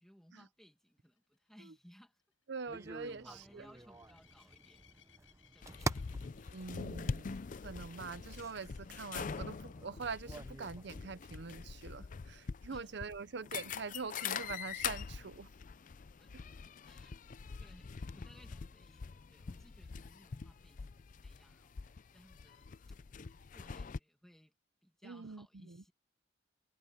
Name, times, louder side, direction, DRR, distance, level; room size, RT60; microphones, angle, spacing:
voice 1, 0.0-2.2 3.0-4.9 5.5-6.2 12.7-12.9 16.2-16.3 16.9-17.1 17.4-22.7 23.2-24.5 24.8-25.9, equal, ahead, 2.2 m, -62 dB
sound 1, 1.0-9.0 9.6-9.9 10.2-10.3 10.6-10.7 14.3-14.4, left 9 dB, 85° left, 7.3 m, -69 dB
voice 2, 2.5-3.3 3.5-3.7 6.5-7.4 7.6-15.5 25.0-25.8, right 4 dB, 60° right, 0.6 m, -44 dB
sound 2, 2.7-10.9, right 2 dB, 15° right, 0.7 m, -47 dB
sound 3, 5.6-24.0, left 6 dB, 45° left, 0.4 m, -44 dB
head